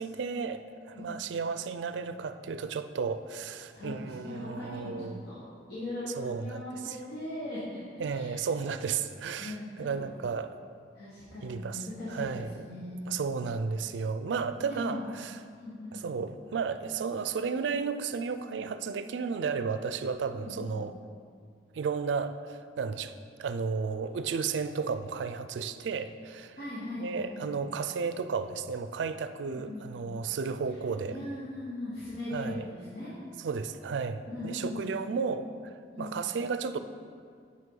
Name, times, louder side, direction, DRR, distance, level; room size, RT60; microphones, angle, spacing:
voice 1, 0.0-5.2 6.2-7.0 8.0-10.6 11.4-12.5 13.1-15.3 15.9-20.9 21.7-23.1 23.4-26.6 27.0-31.2 32.3-32.7 33.4-36.8, right 5 dB, 90° right, 11 dB, 0.4 m, -33 dB
voice 2, 0.9-1.3 3.7-5.4 5.7-8.4 9.4-10.1 10.9-13.2 14.6-15.1 15.5-16.0 20.3-20.7 26.6-27.6 29.4-30.2 31.1-33.1 34.3-35.1 35.9-36.2, left 1 dB, 65° left, -10 dB, 1.4 m, -39 dB
8.1 x 5.4 x 3.8 m, 2.2 s
head